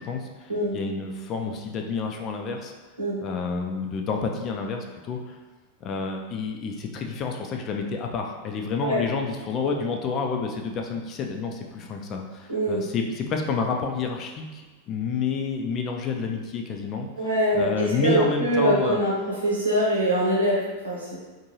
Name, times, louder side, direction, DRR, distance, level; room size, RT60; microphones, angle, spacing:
voice 1, 0.0-2.7 3.2-5.4 5.8-17.1 17.5-19.0, left 4 dB, 35° left, 2 dB, 0.4 m, -29 dB
voice 2, 12.5-12.8 17.2-19.1 19.4-21.2, right 1 dB, 75° right, -6 dB, 0.8 m, -23 dB
2.6 x 2.6 x 2.9 m, 1.3 s
figure-of-eight pair, 90°, 0 cm